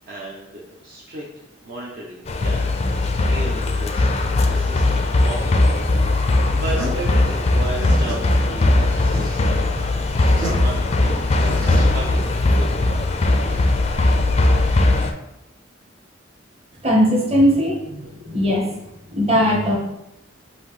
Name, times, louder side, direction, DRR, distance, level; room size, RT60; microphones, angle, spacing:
voice 1, 0.1-1.2 1.6-5.6 6.2-9.6 10.2-13.7 14.3-14.5, right 1 dB, 55° right, -4 dB, 0.7 m, -35 dB
sound 1, 2.3-15.1, left 2 dB, 35° left, 0.4 m, -19 dB
sound 2, 6.6-12.6, right 1 dB, 85° right, 1.3 m, -32 dB
voice 2, 16.8-18.7 19.1-19.8, equal, 35° right, -2 dB, 1.1 m, -19 dB
5.6 x 2.6 x 3.2 m, 0.89 s
head